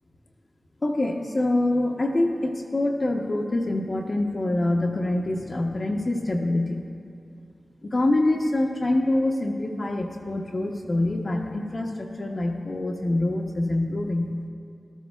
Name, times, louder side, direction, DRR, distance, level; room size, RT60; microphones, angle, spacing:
voice 1, 0.8-6.9 7.8-14.3, left 1 dB, 40° left, 1 dB, 0.6 m, -25 dB
13.5 x 12.5 x 2.3 m, 2.4 s
wide cardioid pair, 100°, 0 cm